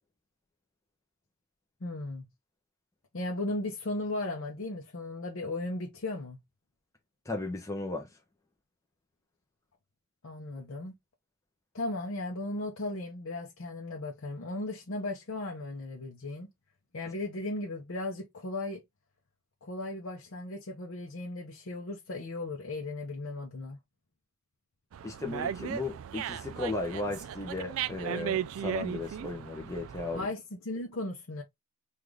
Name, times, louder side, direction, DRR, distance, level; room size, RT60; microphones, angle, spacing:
voice 1, 1.8-2.3 3.1-6.4 10.2-10.9 11.7-16.5 16.9-18.8 19.6-23.8 30.1-31.4, left 2 dB, 60° left, 0.7 m, -36 dB
voice 2, 7.3-8.1 25.0-30.3, left 2 dB, 15° left, 0.7 m, -35 dB
Dog, 24.9-30.3, right 9 dB, 65° right, 0.3 m, -36 dB
3.7 x 2.5 x 3.1 m
head